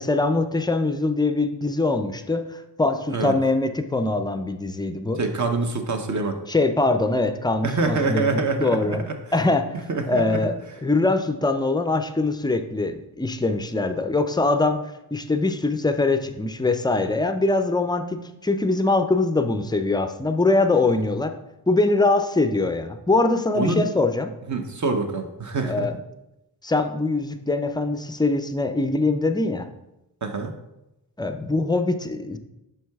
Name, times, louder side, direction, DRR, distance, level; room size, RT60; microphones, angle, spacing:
voice 1, 0.0-5.2 6.5-9.0 9.3-9.7 10.1-10.6 10.8-14.8 15.1-21.3 21.7-24.3 25.6-26.0 26.6-29.7 31.2-32.4, left 2 dB, 10° left, 8 dB, 0.4 m, -23 dB
voice 2, 5.2-6.4 7.6-9.1 9.9-10.5 23.5-23.8 24.5-25.9 30.2-30.5, right 3 dB, 45° right, 5 dB, 0.8 m, -25 dB
6.3 x 4.6 x 3.5 m, 0.92 s
cardioid pair, 75°, 42 cm